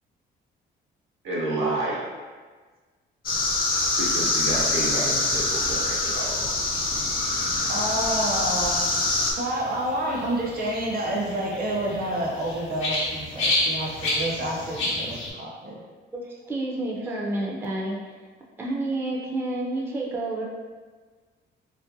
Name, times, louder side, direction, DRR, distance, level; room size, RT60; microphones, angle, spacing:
voice 1, 1.2-2.0 4.0-6.5, right 2 dB, 80° right, -5 dB, 0.8 m, -29 dB
sound 1, 3.2-9.3, left 2 dB, 45° left, 0.5 m, -25 dB
sound 2, 5.0-15.3, left 1 dB, 85° left, 0.7 m, -32 dB
voice 2, 7.7-9.0 9.3-15.8, right 1 dB, 50° right, -2 dB, 0.6 m, -29 dB
voice 3, 16.1-18.1 18.6-20.4, right 2 dB, 10° right, -3 dB, 0.4 m, -29 dB
2.5 x 2.1 x 2.6 m, 1.4 s
cardioid pair, 90°, 20 cm